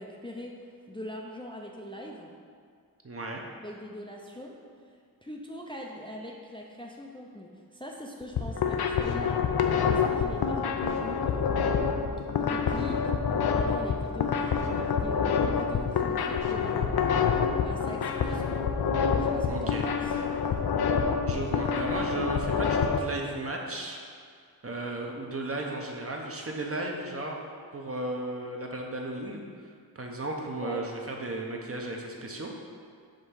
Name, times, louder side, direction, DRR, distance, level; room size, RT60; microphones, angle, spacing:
voice 1, 0.0-2.3 3.6-4.6 5.2-9.5 9.9-11.9 12.2-13.1 13.5-16.9 17.2-17.3 17.6-18.7 19.2-20.2 30.6-30.9, left 1 dB, 15° left, -1 dB, 0.5 m, -41 dB
voice 2, 3.0-3.4 19.5-19.9 21.3-24.0 24.6-27.4 27.7-29.4 29.9-32.5, right 2 dB, 40° right, 0 dB, 0.8 m, -34 dB
sound 1, 8.2-23.0, left 6 dB, 80° left, 0.5 m, -27 dB
5.2 x 3.5 x 5.6 m, 2.2 s
wide cardioid pair, 90°, 37 cm